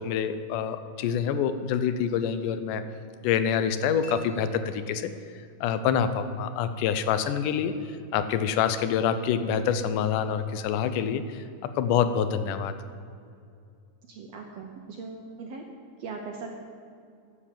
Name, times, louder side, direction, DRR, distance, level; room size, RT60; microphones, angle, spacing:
voice 1, 0.0-2.9 3.2-5.1 5.6-7.7 8.1-12.7, left 8 dB, 80° left, 11 dB, 2.1 m, -26 dB
sound 1, 4.0-5.6, equal, 40° left, 2.0 m, -51 dB
voice 2, 14.1-15.6 16.0-16.5, right 4 dB, 75° right, 2 dB, 1.5 m, -39 dB
11.5 x 7.0 x 7.4 m, 2.4 s
omnidirectional pair, 3.8 m